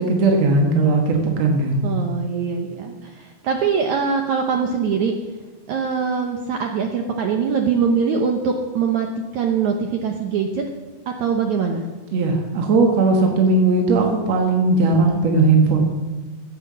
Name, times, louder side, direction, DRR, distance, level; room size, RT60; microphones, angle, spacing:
voice 1, 0.0-1.8 12.1-15.8, right 3 dB, 60° right, 2 dB, 2.0 m, -18 dB
voice 2, 1.8-5.1 5.7-9.1 9.3-10.6 11.2-11.9, right 6 dB, 80° right, 3 dB, 1.6 m, -22 dB
15.0 x 8.9 x 7.4 m, 1.2 s
omnidirectional pair, 4.7 m